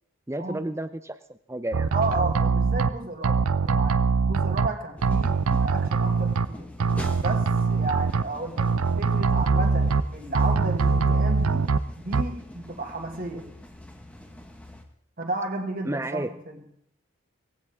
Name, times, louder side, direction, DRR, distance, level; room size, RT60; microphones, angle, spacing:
voice 1, 0.3-1.9 15.8-16.3, right 1 dB, 10° right, 11 dB, 0.7 m, -32 dB
sound 1, 1.7-2.9 3.2-4.7 5.0-6.5 6.8-8.2 8.6-10.0 10.4-11.8 12.1-12.2, right 4 dB, 85° right, 0.6 m, -23 dB
voice 2, 1.9-4.0 4.3-6.7 7.2-8.7 9.0-11.7 12.0-13.5 15.2-16.3, right 2 dB, 40° right, 3 dB, 2.1 m, -32 dB
sound 2, 5.0-14.9, left 1 dB, 5° left, 1.2 m, -44 dB
19.0 x 16.0 x 3.6 m, 0.69 s
head